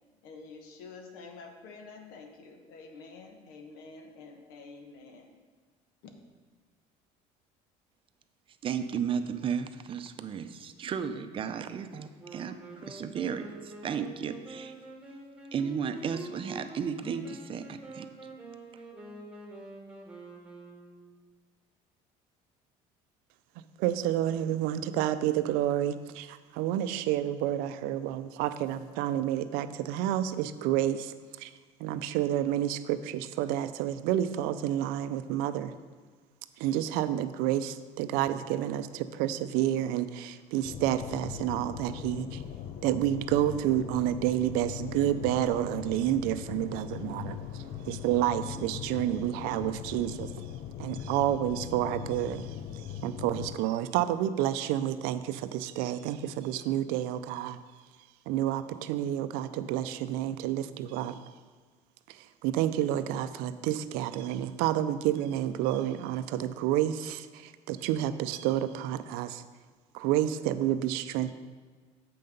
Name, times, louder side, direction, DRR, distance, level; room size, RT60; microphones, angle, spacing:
voice 1, 0.2-5.3, left 4 dB, 80° left, 4 dB, 1.2 m, -48 dB
voice 2, 8.6-12.6 12.8-14.7 15.5-18.1, right 7 dB, 35° right, 9 dB, 0.5 m, -34 dB
Wind instrument woodwind instrument, 12.2-21.2, right 2 dB, 5° right, 1.3 m, -46 dB
voice 3, 23.8-31.5 31.8-35.7 36.6-42.4 42.8-50.4 50.8-57.6 58.3-61.2 62.1-69.4 69.9-71.3, right 12 dB, 85° right, 12 dB, 0.5 m, -29 dB
sound 1, 40.6-53.6, left 9 dB, 45° left, 0.4 m, -40 dB
7.5 x 5.8 x 5.3 m, 1.4 s
cardioid pair, 130°, 15 cm